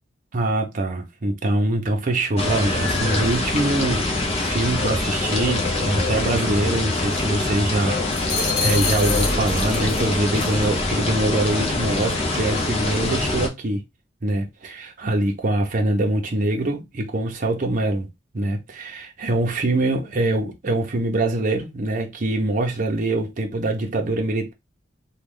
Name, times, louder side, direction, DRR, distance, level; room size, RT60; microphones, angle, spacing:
voice 1, 0.3-4.1 4.4-13.8 14.2-18.1 18.3-24.5, right 2 dB, 45° right, 0.7 m, -24 dB
sound 1, 2.4-13.5, left 2 dB, 35° left, 0.8 m, -24 dB
sound 2, 8.1-10.0 10.4-10.6, left 5 dB, 70° left, 1.2 m, -27 dB
3.1 x 2.3 x 3.6 m
head